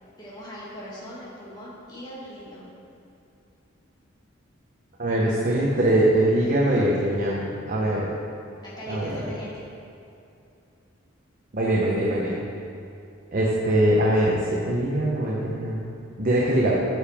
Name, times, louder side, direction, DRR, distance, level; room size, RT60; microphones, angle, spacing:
voice 1, 0.2-2.7 8.6-9.6, equal, 20° left, -7 dB, 1.7 m, -40 dB
voice 2, 5.0-8.1 8.9-9.3 11.5-12.4 13.3-16.8, right 1 dB, 40° right, -4 dB, 0.8 m, -22 dB
9.3 x 6.9 x 3.5 m, 2.7 s
head